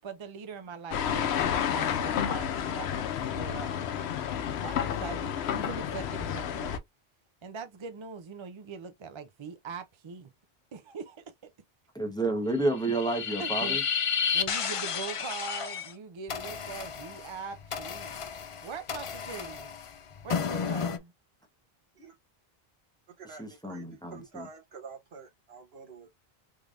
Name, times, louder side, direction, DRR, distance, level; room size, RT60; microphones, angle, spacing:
voice 1, 0.0-3.7 4.6-6.8 7.4-10.3 10.7-11.2 13.4-13.8 14.3-18.3 18.6-19.7 20.2-21.1, right 5 dB, 45° right, 0.4 m, -42 dB
sound 1, 0.9-6.8, left 8 dB, 85° left, 0.9 m, -30 dB
voice 2, 11.9-13.8 23.4-24.5, right 2 dB, 5° left, 0.9 m, -30 dB
sound 2, 12.7-15.9 16.3-21.0, left 7 dB, 55° left, 0.3 m, -32 dB
voice 3, 23.1-26.1, right 5 dB, 75° right, 1.3 m, -48 dB
3.7 x 3.3 x 2.5 m
omnidirectional pair, 1.0 m